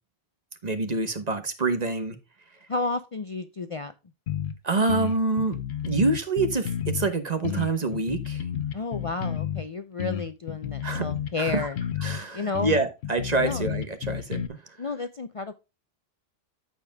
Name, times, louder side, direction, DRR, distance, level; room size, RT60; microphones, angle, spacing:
voice 1, 0.6-2.2 4.6-5.6 5.8-8.4 10.8-11.1 11.4-11.7 12.0-14.8, right 3 dB, 40° right, 1.2 m, -26 dB
voice 2, 2.7-3.9 8.7-11.8 12.3-12.7 13.4-13.7 14.8-15.5, left 3 dB, 40° left, 0.5 m, -31 dB
sound 1, 4.3-4.5 4.9-7.1 7.4-9.7 10.0-12.2 12.5-14.5, left 9 dB, 90° left, 1.1 m, -31 dB
14.0 x 5.0 x 2.2 m
omnidirectional pair, 1.0 m